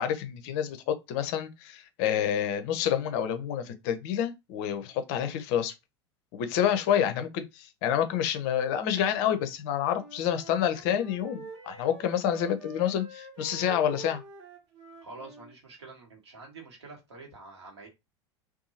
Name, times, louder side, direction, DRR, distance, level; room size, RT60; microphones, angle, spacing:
voice 1, 0.0-5.7 6.3-14.2, left 9 dB, 45° left, 0.5 m, -28 dB
Wind instrument woodwind instrument, 9.9-15.5, right 4 dB, 45° right, 1.0 m, -46 dB
voice 2, 15.0-17.9, right 3 dB, 70° right, 1.2 m, -47 dB
2.6 x 2.3 x 2.8 m
figure-of-eight pair, 80°, 15 cm